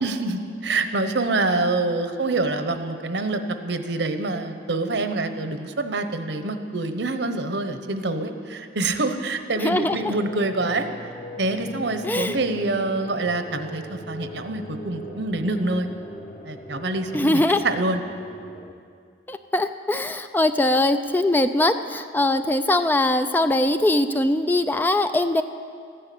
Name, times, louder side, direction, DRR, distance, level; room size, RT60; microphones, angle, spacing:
voice 1, 0.0-11.1 11.4-15.9 16.4-18.0, right 2 dB, 70° right, 8 dB, 1.0 m, -26 dB
voice 2, 9.6-10.1 12.0-12.4 17.1-17.6 19.3-25.4, left 1 dB, 10° left, 10 dB, 0.3 m, -21 dB
sound 1, 9.8-18.7, left 1 dB, 40° left, 1.1 m, -40 dB
14.0 x 10.5 x 8.4 m, 2.3 s
head